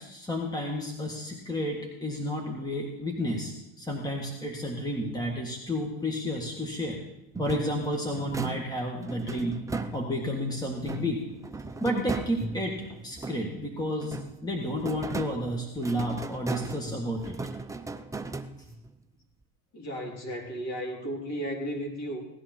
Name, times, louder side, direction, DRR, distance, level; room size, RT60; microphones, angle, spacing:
voice 1, 0.0-7.0 7.4-11.2 11.8-12.8 13.0-14.2 14.4-17.4, equal, 10° left, 1 dB, 1.8 m, -31 dB
sound 1, 7.3-10.4 10.8-13.7 14.0-18.9, right 3 dB, 5° right, 0.6 m, -37 dB
voice 2, 19.7-22.2, equal, 35° left, 0 dB, 3.2 m, -34 dB
17.5 x 11.0 x 4.5 m, 0.93 s
supercardioid pair, 100°, 45 cm